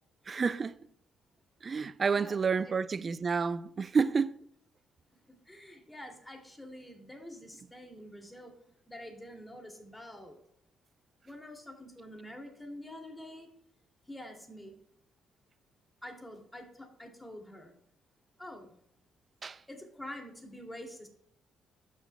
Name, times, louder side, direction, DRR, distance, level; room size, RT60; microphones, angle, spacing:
voice 1, 0.3-0.8 1.6-4.4 19.4-19.6, right 5 dB, 40° right, 0.4 m, -29 dB
voice 2, 5.3-8.5 8.9-10.4 11.2-13.5 14.1-14.7 16.0-17.7 18.4-18.7 19.7-21.1, left 1 dB, 10° left, 2.4 m, -47 dB
14.5 x 6.2 x 2.2 m
supercardioid pair, 60°, 0 cm